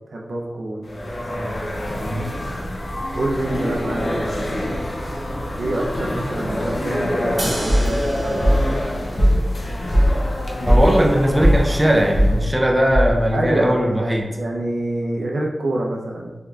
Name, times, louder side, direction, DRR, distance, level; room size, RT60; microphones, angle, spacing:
voice 1, 0.1-0.9 3.1-4.7 5.6-8.8 13.3-16.4, right 1 dB, 80° right, -1 dB, 0.6 m, -26 dB
sound 1, 0.8-12.5, equal, 50° left, 0.6 m, -26 dB
sound 2, 7.4-13.4, right 1 dB, 40° right, 0.8 m, -36 dB
sound 3, 7.7-13.5, equal, 35° left, 0.9 m, -20 dB
voice 2, 10.7-14.3, equal, 15° right, 1 dB, 0.4 m, -19 dB
3.5 x 3.2 x 2.3 m, 1.1 s
wide cardioid pair, 90°, 0 cm